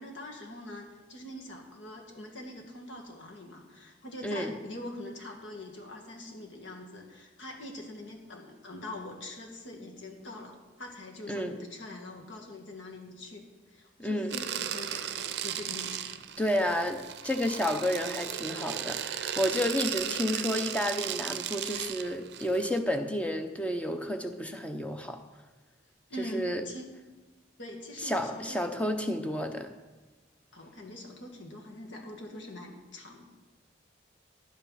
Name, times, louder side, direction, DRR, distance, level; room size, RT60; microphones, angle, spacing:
voice 1, 0.0-16.2 26.1-26.9 27.6-28.6 30.5-33.2, left 1 dB, 75° left, 1 dB, 2.0 m, -43 dB
voice 2, 4.2-4.5 11.3-11.6 14.0-14.4 16.4-25.2 26.2-26.6 28.0-29.7, equal, 5° left, 5 dB, 0.7 m, -31 dB
sound 1, 14.3-22.8, right 9 dB, 60° right, 0.5 m, -36 dB
11.0 x 8.7 x 5.7 m, 1.2 s
head